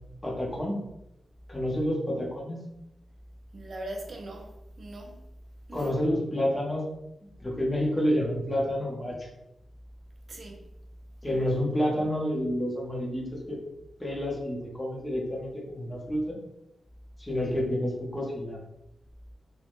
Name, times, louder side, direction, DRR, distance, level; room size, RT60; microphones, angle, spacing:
voice 1, 0.2-0.9 1.5-2.6 5.7-6.9 7.4-9.3 11.2-13.6 14.0-16.4 17.2-18.6, equal, 15° left, 0.6 m, -29 dB
voice 2, 3.5-4.5 4.8-5.2 5.7-5.9 10.3-10.6, right 1 dB, 40° right, 0.4 m, -40 dB
3.3 x 2.0 x 2.5 m
wide cardioid pair, 170°, 0 cm